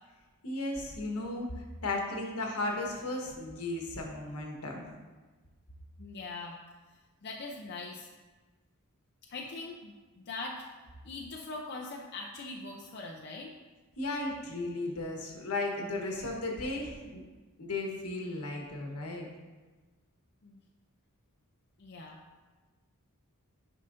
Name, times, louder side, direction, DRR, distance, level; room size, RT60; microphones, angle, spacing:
voice 1, 0.4-4.9 14.0-17.2 17.6-19.3, left 2 dB, 80° left, 0 dB, 1.3 m, -35 dB
voice 2, 6.0-6.6 7.2-8.1 9.3-10.7 11.0-13.5 20.4-20.6 21.8-22.4, left 3 dB, 50° left, -1 dB, 0.5 m, -42 dB
9.8 x 5.5 x 2.6 m, 1.3 s
head